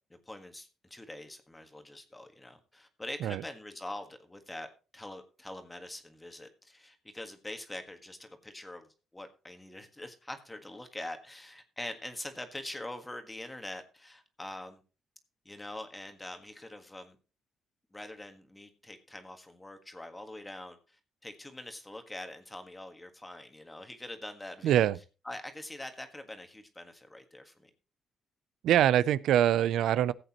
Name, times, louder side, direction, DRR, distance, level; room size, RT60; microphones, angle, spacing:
voice 1, 0.1-4.7 4.9-8.9 9.1-14.8 15.4-17.2 17.9-20.8 21.2-24.9 25.2-27.7, left 1 dB, 15° left, 1.6 m, -44 dB
voice 2, 24.6-25.0 28.6-30.1, right 11 dB, 80° right, 0.4 m, -24 dB
16.0 x 8.0 x 3.0 m
cardioid pair, 90°, 0 cm